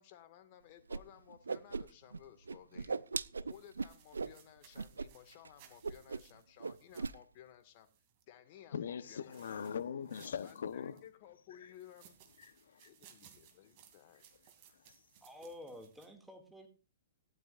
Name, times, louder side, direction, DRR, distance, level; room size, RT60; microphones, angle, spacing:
voice 1, 0.0-3.0 3.4-7.9 8.3-9.4 10.4-12.2 12.8-14.2, left 11 dB, 40° left, 1.9 m, -57 dB
Whoosh swoosh swish, 0.9-1.0 1.3-2.2 2.5-4.3 4.7-5.1 5.3-5.5 5.8-6.3 6.6-7.1, right 4 dB, 75° right, 0.5 m, -38 dB
sound 1, 3.5-8.2 9.0-11.1 11.7-16.1, right 9 dB, 40° right, 2.7 m, -64 dB
voice 2, 8.7-11.0 12.4-12.9, left 7 dB, 65° left, 1.0 m, -41 dB
voice 3, 15.2-16.7, left 1 dB, 5° right, 2.4 m, -50 dB
18.5 x 11.5 x 2.6 m
figure-of-eight pair, 115°, 0 cm